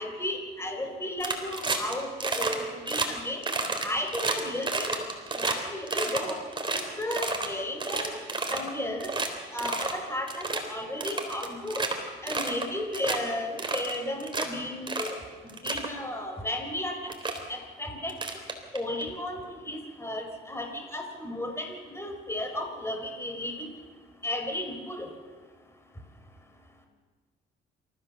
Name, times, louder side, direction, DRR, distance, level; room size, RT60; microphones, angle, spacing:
voice 1, 0.0-3.4 3.8-5.0 5.4-6.3 6.7-8.2 8.5-9.1 9.5-11.9 12.2-15.2 15.4-17.0 17.5-18.1 18.7-23.7 24.2-25.1, left 1 dB, 15° left, 3 dB, 4.6 m, -34 dB
sound 1, 1.2-1.9 2.2-2.6 2.9-3.1 3.4-5.6 5.9-7.5 7.8-8.7 9.0-9.3 9.6-10.0 10.3-10.6 11.0-11.9 12.3-12.7 12.9-13.2 13.6-14.5 14.9-15.1 15.5-15.9 16.7-16.8 17.1-17.4 18.1-19.0, right 3 dB, 25° right, 3.6 m, -30 dB
27.5 x 14.5 x 7.0 m, 1.5 s
cardioid pair, 90°, 20 cm